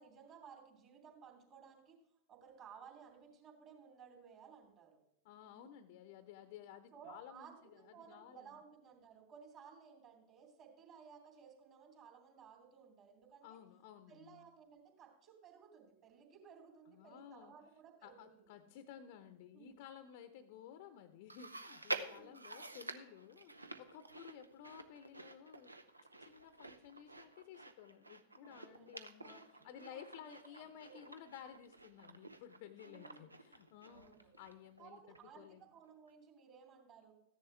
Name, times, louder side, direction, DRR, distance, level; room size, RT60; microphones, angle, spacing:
voice 1, 0.0-2.0 2.3-5.0 5.4-5.7 6.9-13.6 14.1-18.5 19.5-19.8 22.0-22.4 28.4-31.1 32.8-33.2 33.9-34.3 34.8-37.2, right 6 dB, 35° right, 3 dB, 3.0 m, -59 dB
voice 2, 5.2-8.6 13.4-14.4 16.9-17.5 18.0-25.8 26.2-35.0 35.4-35.6, left 9 dB, 50° left, 11 dB, 0.7 m, -55 dB
Chewing mastication, 21.3-34.8 35.1-35.2 36.1-36.2, right 2 dB, 80° right, 0.7 m, -49 dB
14.5 x 10.5 x 3.4 m, 0.80 s
figure-of-eight pair, 90°, 0 cm